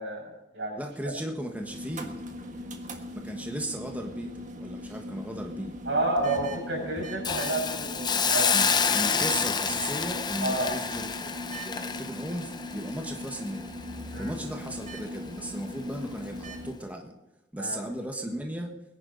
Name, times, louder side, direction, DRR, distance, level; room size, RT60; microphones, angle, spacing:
voice 1, 0.0-0.8 5.8-8.5 10.4-10.7 14.1-14.4 17.6-17.8, right 2 dB, 85° right, -1 dB, 6.3 m, -30 dB
voice 2, 0.8-2.2 3.1-4.3 4.6-5.7 8.5-8.6 8.9-11.3 11.6-13.8 14.2-17.1 17.5-18.7, right 1 dB, 10° right, 2 dB, 1.4 m, -36 dB
sound 1, 1.5-16.7, left 1 dB, 45° right, 1.6 m, -40 dB
Hiss, 7.2-14.3 14.7-14.8, left 6 dB, 25° left, 0.7 m, -28 dB
22.5 x 10.5 x 4.0 m, 0.96 s
head